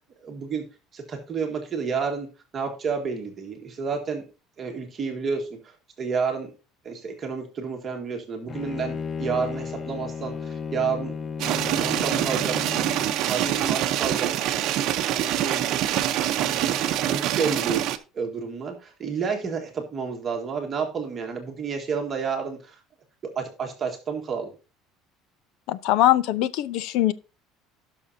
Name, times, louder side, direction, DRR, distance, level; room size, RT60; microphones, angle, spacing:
voice 1, 0.2-0.6 0.9-2.3 2.5-4.2 4.6-6.5 6.8-11.2 11.5-12.8 13.2-14.3 15.0-15.7 16.3-16.7 17.0-17.9 18.1-22.8 23.2-24.5, right 5 dB, 25° right, 1.7 m, -30 dB
Bowed string instrument, 8.5-13.2, left 5 dB, 25° left, 0.4 m, -34 dB
sound 1, 11.4-18.0, right 12 dB, 55° right, 0.8 m, -25 dB
voice 2, 25.7-27.1, left 14 dB, 65° left, 0.6 m, -21 dB
17.0 x 6.2 x 2.7 m
cardioid pair, 155°, 0 cm